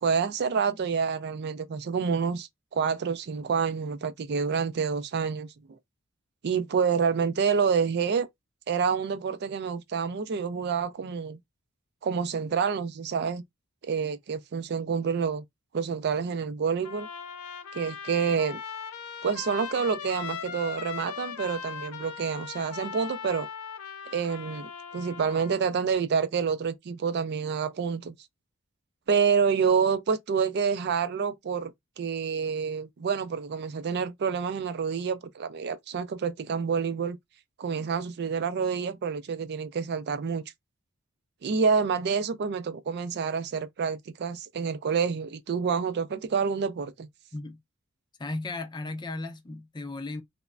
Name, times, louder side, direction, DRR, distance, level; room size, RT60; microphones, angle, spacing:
voice 1, 0.0-5.5 6.4-8.3 8.7-11.4 12.0-13.4 13.8-15.4 15.7-17.1 17.7-18.6 19.2-23.5 24.1-28.2 29.1-31.7 32.0-37.2 37.6-40.4 41.4-47.1, right 6 dB, 50° right, 0.4 m, -28 dB
Trumpet, 16.8-25.6, left 7 dB, 80° left, 0.4 m, -39 dB
voice 2, 48.2-50.2, left 2 dB, 20° left, 0.4 m, -35 dB
3.0 x 2.1 x 2.4 m
head